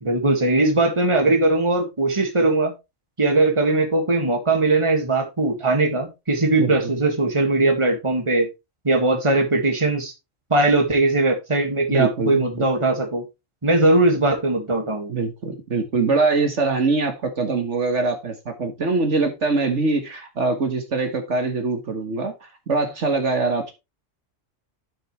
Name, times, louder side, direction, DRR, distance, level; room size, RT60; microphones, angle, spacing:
voice 1, 0.0-2.7 3.2-8.5 8.8-10.1 10.5-13.2 13.6-15.1, right 2 dB, 25° right, 1.9 m, -20 dB
voice 2, 6.6-6.9 11.9-12.5 15.1-23.7, right 3 dB, 65° right, 1.8 m, -23 dB
11.5 x 6.5 x 3.2 m
omnidirectional pair, 1.3 m